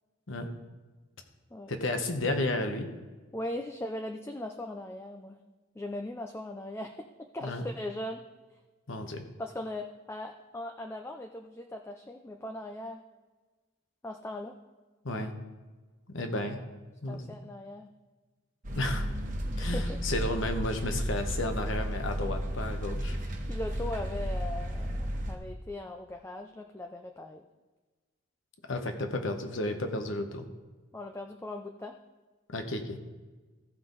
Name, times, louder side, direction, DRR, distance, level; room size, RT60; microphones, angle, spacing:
voice 1, 1.7-2.9 7.4-7.6 8.9-9.2 15.0-15.3 16.1-16.6 17.0-17.2 18.8-19.0 19.6-23.2 28.7-30.4 32.5-33.0, left 1 dB, 65° left, 6 dB, 1.1 m, -32 dB
voice 2, 3.3-5.4 5.8-7.1 7.3-8.2 9.4-13.0 14.0-14.6 17.1-17.9 19.6-20.0 23.4-27.4 30.9-32.0, left 1 dB, 10° left, 4 dB, 0.4 m, -39 dB
sound 1, 18.6-25.4, equal, 40° right, 1.2 m, -33 dB
15.0 x 5.6 x 4.0 m, 1.3 s
head